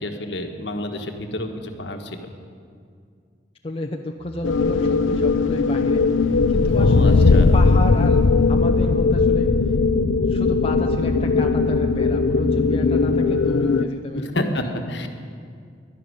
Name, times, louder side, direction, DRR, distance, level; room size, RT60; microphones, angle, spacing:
voice 1, 0.0-2.3 6.8-7.6 14.1-15.1, left 1 dB, 65° left, 5 dB, 1.4 m, -29 dB
voice 2, 3.6-9.5 10.3-14.5, left 2 dB, 30° left, 2 dB, 0.6 m, -31 dB
sound 1, 4.2-13.3, right 1 dB, 5° left, 3.1 m, -36 dB
sound 2, 4.4-13.8, left 4 dB, 90° left, 0.5 m, -18 dB
12.0 x 11.0 x 9.8 m, 2.2 s
head